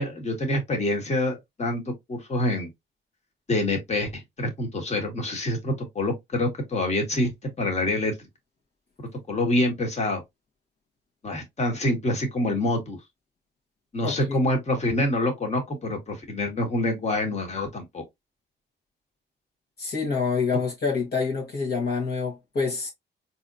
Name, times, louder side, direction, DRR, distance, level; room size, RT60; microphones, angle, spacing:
voice 1, 0.0-2.7 3.5-8.1 9.3-10.2 11.2-13.0 13.9-18.0, left 1 dB, 35° left, 1.6 m, -26 dB
voice 2, 14.0-14.5 19.8-22.9, left 5 dB, 50° left, 1.4 m, -27 dB
4.1 x 2.9 x 2.6 m
cardioid pair, 90°, 20 cm